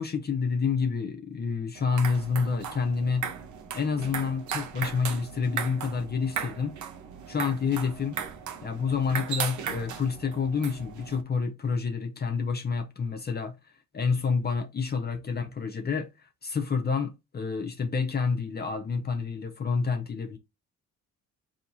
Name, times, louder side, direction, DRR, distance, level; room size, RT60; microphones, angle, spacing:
voice 1, 0.0-3.3 3.7-6.7 7.3-8.2 8.6-13.5 13.9-16.1 16.4-20.4, left 5 dB, 35° left, 0.7 m, -28 dB
sound 1, 1.7-11.2, right 7 dB, 75° right, 1.0 m, -37 dB
4.2 x 2.8 x 4.0 m
cardioid pair, 90°, 30 cm